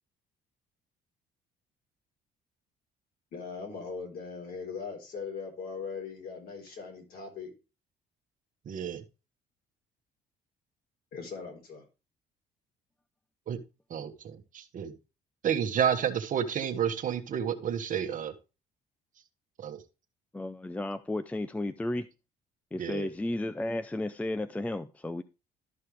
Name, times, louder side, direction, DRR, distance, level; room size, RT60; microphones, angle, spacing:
voice 1, 3.3-7.5 11.1-11.8, left 5 dB, 65° left, 4.0 m, -40 dB
voice 2, 8.7-9.0 13.5-13.6 13.9-14.9 15.4-18.3 19.6-19.8 22.8-23.1, right 8 dB, 50° right, 1.3 m, -30 dB
voice 3, 20.3-22.1 22.7-25.2, left 1 dB, 10° left, 0.4 m, -33 dB
12.5 x 5.6 x 3.2 m
cardioid pair, 110°, 17 cm